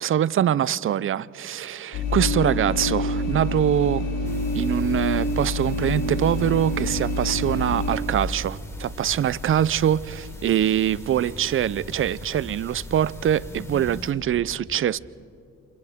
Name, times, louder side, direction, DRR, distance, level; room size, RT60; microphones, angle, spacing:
voice 1, 0.0-4.0 4.5-15.0, right 10 dB, 45° right, 0.5 m, -23 dB
sound 1, 1.9-8.0, left 2 dB, 90° left, 5.9 m, -27 dB
sound 2, 4.2-14.1, left 1 dB, 10° left, 4.6 m, -39 dB
29.0 x 27.5 x 3.6 m
cardioid pair, 90°, 30 cm